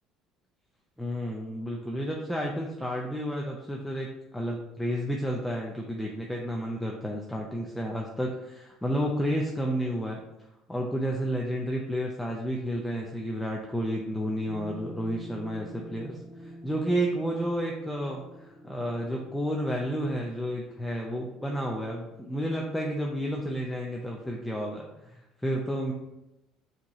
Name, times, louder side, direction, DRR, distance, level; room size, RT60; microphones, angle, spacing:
voice 1, 1.0-10.2 10.7-25.9, equal, 5° left, -1 dB, 0.5 m, -31 dB
sound 1, 14.4-23.0, right 1 dB, 70° right, 1.5 m, -48 dB
6.0 x 2.9 x 3.0 m, 0.91 s
cardioid pair, 125°, 0 cm